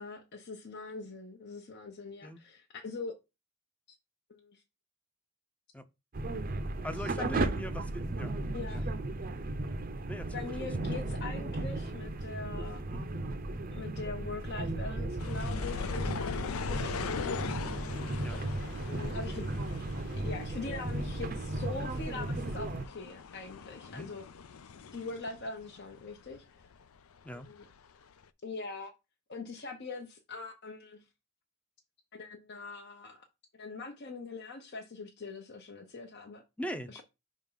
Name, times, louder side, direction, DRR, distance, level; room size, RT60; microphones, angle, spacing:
voice 1, 0.0-3.1 4.3-4.6 7.2-7.5 8.5-8.9 10.3-12.8 13.7-17.3 18.8-19.5 20.1-24.2 24.9-26.4 27.5-27.7 28.4-28.9 29.3-31.0 32.1-33.2 33.5-36.4 36.9-37.0, left 3 dB, 50° left, 0.8 m, -42 dB
sound 1, 6.1-22.9, right 2 dB, 40° right, 0.6 m, -35 dB
voice 2, 6.8-8.4 8.7-8.9 10.1-10.5 12.9-13.1 18.2-18.4 23.9-24.1 27.2-27.5 36.6-37.0, equal, 5° left, 0.6 m, -41 dB
sound 2, 15.2-26.4 26.6-27.7 28.2-28.3, left 5 dB, 75° left, 0.5 m, -41 dB
5.6 x 3.7 x 5.5 m
head